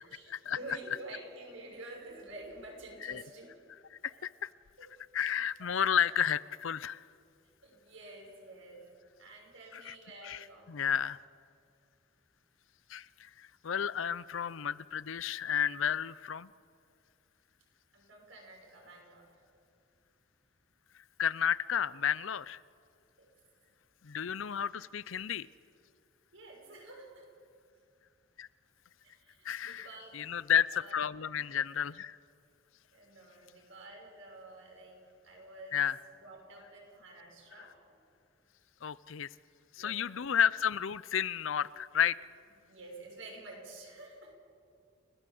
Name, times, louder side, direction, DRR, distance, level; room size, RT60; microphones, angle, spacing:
voice 1, 0.0-3.5 4.1-4.2 4.8-4.9 5.6-5.8 7.6-8.8 9.2-10.8 17.9-19.3 23.2-23.3 26.3-27.3 29.0-30.4 30.7-31.0 32.9-35.0 35.2-35.8 36.1-38.0 39.8-40.3 42.7-44.3, right 2 dB, 70° right, 0 dB, 6.5 m, -49 dB
voice 2, 4.0-4.5 5.1-7.0 9.7-9.9 10.2-10.4 10.7-11.2 12.9-16.5 21.2-22.6 24.0-25.5 28.4-28.5 29.4-29.9 30.1-32.2 35.7-36.0 37.6-37.7 38.8-39.3 39.7-42.2, left 8 dB, 70° left, 18 dB, 0.5 m, -32 dB
29.5 x 18.5 x 7.8 m, 2.4 s
head